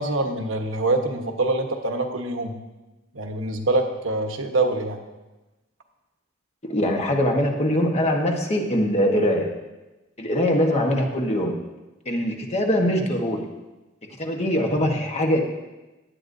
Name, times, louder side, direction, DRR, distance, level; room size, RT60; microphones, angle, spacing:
voice 1, 0.0-2.5 3.1-5.0, right 2 dB, 90° right, 4 dB, 1.2 m, -25 dB
voice 2, 6.6-9.5 10.2-11.5 12.0-13.5 14.2-15.4, equal, 35° left, 2 dB, 1.2 m, -22 dB
16.5 x 9.4 x 2.7 m, 1.1 s
head